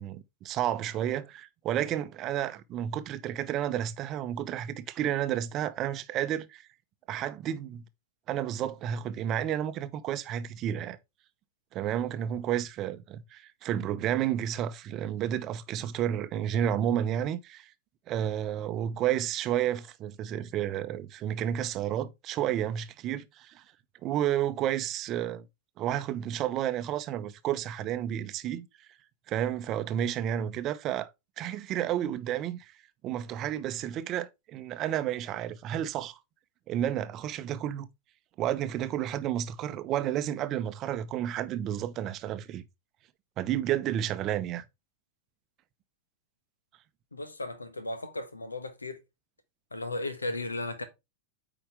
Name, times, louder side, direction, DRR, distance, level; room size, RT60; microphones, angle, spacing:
voice 1, 0.0-6.6 7.1-7.8 8.3-11.0 11.7-17.7 18.1-23.6 24.0-25.5 25.8-28.7 29.3-31.1 31.4-32.7 33.0-36.2 36.7-37.9 38.4-42.6 43.4-44.6, right 11 dB, 35° right, 0.7 m, -31 dB
voice 2, 47.1-49.0 49.7-50.8, left 2 dB, 80° left, 1.3 m, -35 dB
8.7 x 5.0 x 3.5 m
figure-of-eight pair, 90°, 0 cm